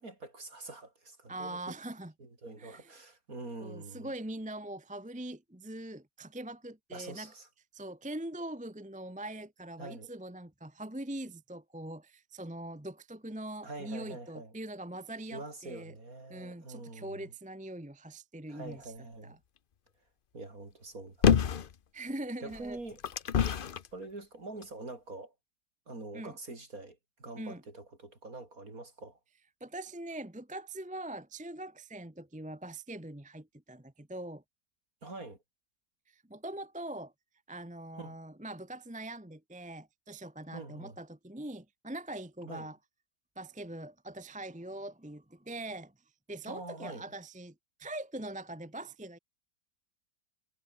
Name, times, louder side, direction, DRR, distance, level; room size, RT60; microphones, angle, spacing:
voice 1, 0.0-1.7 2.2-4.1 6.9-7.5 9.8-10.1 13.6-14.5 15.3-17.2 18.5-19.4 20.3-21.2 22.4-23.0 23.9-25.3 25.9-29.2 35.0-35.4 38.0-38.2 40.5-41.0 42.4-42.7 46.5-47.1, right 2 dB, 50° right, 5.2 m, -45 dB
voice 2, 1.3-2.1 2.6-2.9 3.6-7.3 7.7-15.9 16.3-18.9 19.2-19.4 21.9-22.8 26.1-26.4 27.4-27.6 29.6-34.4 36.1-37.1 37.5-42.8 43.4-45.9 46.3-49.2, right 1 dB, 5° right, 1.1 m, -42 dB
sound 1, 21.2-21.7 22.5-23.9 24.6-24.7, left 8 dB, 55° left, 0.6 m, -26 dB
omnidirectional pair, 2.0 m